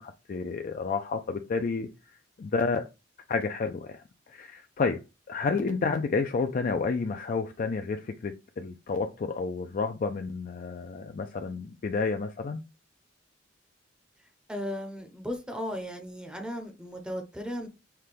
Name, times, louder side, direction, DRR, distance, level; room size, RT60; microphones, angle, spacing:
voice 1, 0.0-1.9 2.4-2.8 3.3-4.0 4.3-5.0 5.3-12.6, left 4 dB, 45° left, 0.3 m, -30 dB
voice 2, 14.5-17.7, equal, 5° right, 0.6 m, -36 dB
5.8 x 2.2 x 3.3 m
head